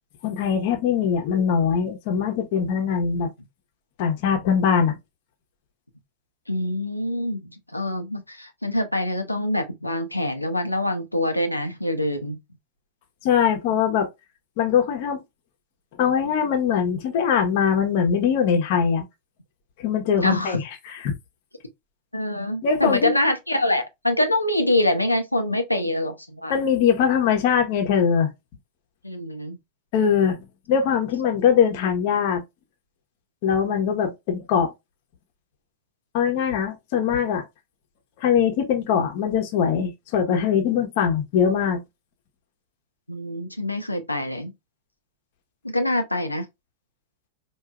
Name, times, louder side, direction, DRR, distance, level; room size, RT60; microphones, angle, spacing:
voice 1, 0.2-3.3 4.0-5.0 13.2-14.1 14.6-15.2 16.0-19.0 19.8-21.1 22.6-23.1 26.5-28.3 29.9-32.4 33.4-34.7 36.1-37.5 38.2-41.8, left 7 dB, 50° left, 1.0 m, -22 dB
voice 2, 6.5-12.4 20.2-20.6 22.1-26.6 29.0-29.6 43.1-44.5 45.6-46.4, left 1 dB, 85° left, 0.7 m, -25 dB
4.6 x 2.7 x 2.4 m
figure-of-eight pair, 90°, 0 cm